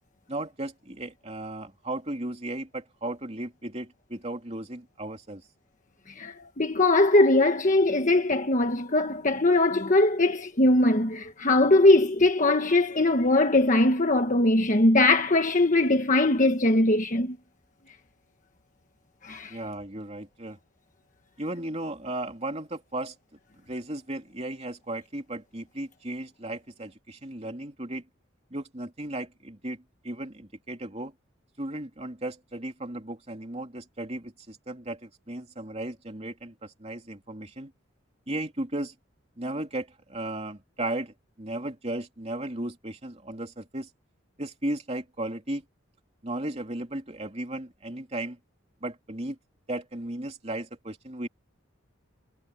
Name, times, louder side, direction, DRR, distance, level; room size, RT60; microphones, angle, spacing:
voice 1, 0.3-5.4 19.5-20.6 21.4-23.1 23.6-28.1 28.5-31.1 31.6-37.7 38.3-38.9 39.4-43.9 44.4-45.6 46.2-48.4 48.8-49.4 49.7-51.3, right 1 dB, 30° right, 3.0 m, -35 dB
voice 2, 6.2-17.4 19.2-19.6, left 2 dB, 40° left, 1.3 m, -21 dB
head